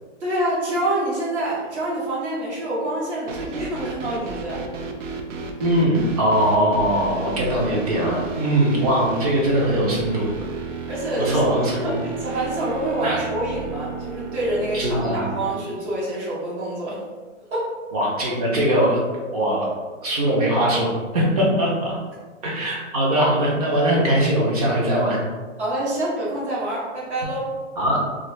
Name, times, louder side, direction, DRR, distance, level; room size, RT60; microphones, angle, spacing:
voice 1, 0.2-4.6 10.9-11.5 11.8-17.0 17.5-17.7 25.6-27.4, right 1 dB, 60° right, -6 dB, 1.2 m, -26 dB
sound 1, 3.3-15.5, right 4 dB, 80° right, 0.6 m, -32 dB
voice 2, 5.6-10.3 11.2-12.0 13.0-13.2 14.7-15.2 17.9-19.0 19.3-19.7 20.0-22.0 22.4-25.2 27.8-28.0, right 1 dB, 30° right, -3 dB, 0.6 m, -21 dB
2.5 x 2.4 x 3.1 m, 1.4 s
hypercardioid pair, 155°, 38 cm